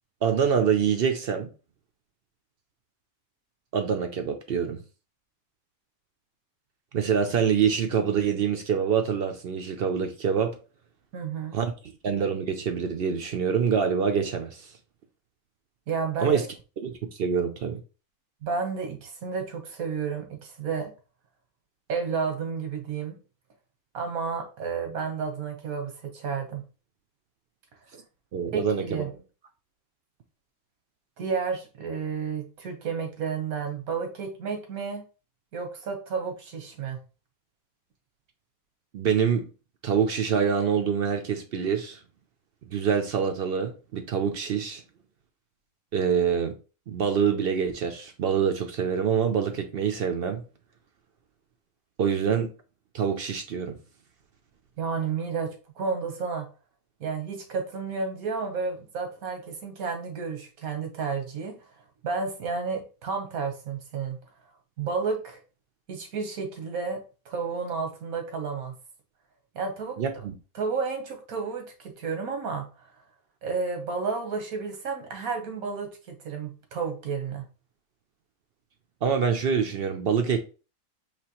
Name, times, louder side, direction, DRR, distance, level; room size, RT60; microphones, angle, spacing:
voice 1, 0.2-1.5 3.7-4.8 6.9-10.6 11.5-14.7 16.2-16.5 16.8-17.8 28.3-29.0 38.9-39.5 39.8-42.0 42.7-44.8 45.9-46.5 46.9-50.4 52.0-52.5 52.9-53.8 70.0-70.3 79.0-80.4, right 7 dB, 60° right, 0.6 m, -25 dB
voice 2, 11.1-11.5 15.9-16.4 18.4-20.9 21.9-23.2 23.9-26.6 28.5-29.1 31.2-35.0 35.5-37.0 54.8-56.5 57.0-61.5 62.0-64.2 64.8-65.4 65.9-67.0 67.2-68.7 69.5-70.0 70.6-72.9 73.4-77.4, right 5 dB, 85° right, 1.5 m, -31 dB
5.0 x 2.9 x 2.9 m
omnidirectional pair, 1.5 m